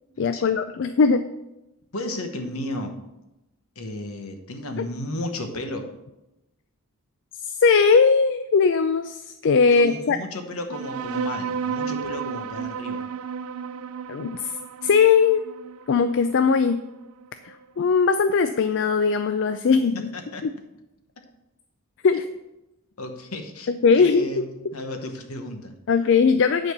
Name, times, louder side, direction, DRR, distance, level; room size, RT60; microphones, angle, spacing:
voice 1, 0.2-1.3 7.6-10.2 14.1-14.5 14.8-15.4 15.9-16.8 17.8-20.1 20.4-20.5 22.0-22.2 23.7-24.4 25.9-26.7, left 5 dB, 55° left, 10 dB, 0.4 m, -19 dB
voice 2, 1.9-3.0 3.7-5.8 9.7-13.1 20.1-20.4 23.0-25.7, left 1 dB, 70° left, 6 dB, 1.2 m, -34 dB
sound 1, 10.7-17.6, right 6 dB, 70° right, 0.4 m, -33 dB
9.8 x 4.3 x 6.7 m, 0.94 s
head